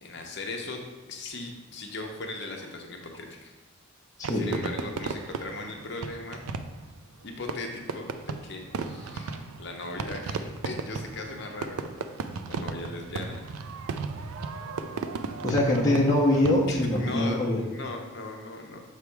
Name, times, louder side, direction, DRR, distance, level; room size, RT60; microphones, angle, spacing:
voice 1, 0.0-0.8 1.1-3.5 4.3-6.4 7.2-11.8 12.5-13.4 16.7-18.8, left 2 dB, 55° left, 2 dB, 0.8 m, -38 dB
voice 2, 4.2-4.5 15.4-17.6, left 1 dB, 15° left, -5 dB, 0.9 m, -23 dB
Fireworks, 4.2-16.9, right 4 dB, 85° right, 0.4 m, -35 dB
6.8 x 3.3 x 4.7 m, 1.1 s
head